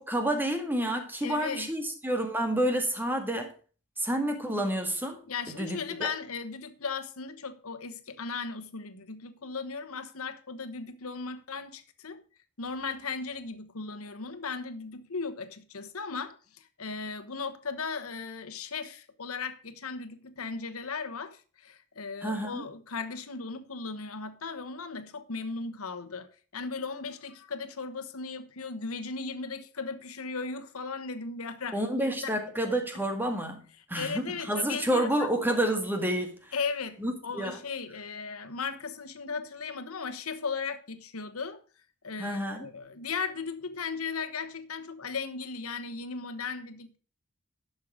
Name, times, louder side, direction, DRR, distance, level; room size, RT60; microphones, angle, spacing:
voice 1, 0.0-3.5 4.0-5.2 5.6-6.1 22.2-22.6 31.7-33.6 33.9-36.5 37.0-37.6 42.2-42.7, right 1 dB, 10° right, 1.7 m, -29 dB
voice 2, 1.2-1.7 5.3-12.2 12.6-32.6 33.9-35.3 36.5-41.6 42.0-47.0, left 5 dB, 85° left, 1.2 m, -37 dB
11.0 x 6.5 x 5.0 m
head